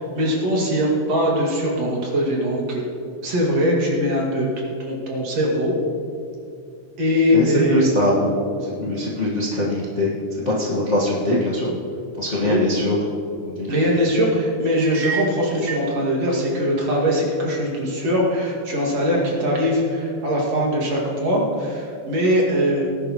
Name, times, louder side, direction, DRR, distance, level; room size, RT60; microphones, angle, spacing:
voice 1, 0.0-2.8 3.2-4.5 4.8-5.7 7.0-7.8 12.4-12.6 13.7-22.9, equal, 55° right, -3 dB, 3.3 m, -21 dB
voice 2, 7.3-8.3 8.8-10.1 10.4-11.7 12.2-13.0 13.4-13.7, left 1 dB, 35° left, -6 dB, 1.3 m, -22 dB
sound 1, 14.8-15.9, right 5 dB, 80° right, 2.8 m, -30 dB
19.5 x 10.5 x 3.1 m, 2.5 s
omnidirectional pair, 3.5 m